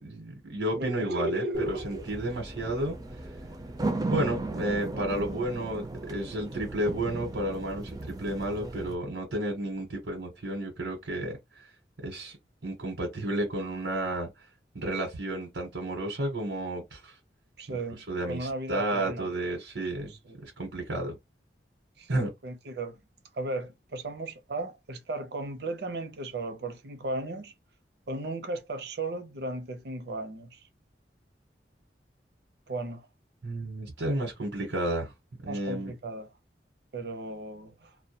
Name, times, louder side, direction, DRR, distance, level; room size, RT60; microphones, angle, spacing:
voice 1, 0.0-1.4 1.8-3.0 4.1-11.7 12.0-12.4 12.6-14.3 14.7-17.2 17.7-17.8 18.1-20.1 20.4-21.2 22.1-22.3 33.4-35.1 35.4-35.9, right 1 dB, 85° right, 0.9 m, -32 dB
voice 2, 0.7-2.3 17.6-19.3 20.0-20.4 22.0-22.1 22.4-23.0 23.3-27.5 28.1-30.6 32.7-33.1 35.4-36.3 36.9-38.0, right 2 dB, 65° right, 0.6 m, -35 dB
sound 1, 1.5-9.0, right 2 dB, 20° right, 0.3 m, -36 dB
2.2 x 2.1 x 2.7 m
head